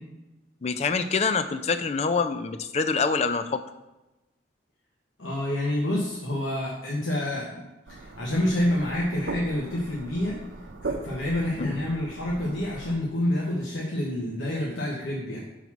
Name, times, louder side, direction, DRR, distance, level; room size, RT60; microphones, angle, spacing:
voice 1, 0.6-3.6 11.6-11.7, left 4 dB, 35° left, 9 dB, 0.4 m, -25 dB
voice 2, 5.2-10.4 10.8-15.5, left 1 dB, 85° left, -3 dB, 1.1 m, -28 dB
sound 1, 7.9-13.0, right 3 dB, 75° right, 0.7 m, -39 dB
6.0 x 4.0 x 5.9 m, 1.0 s
head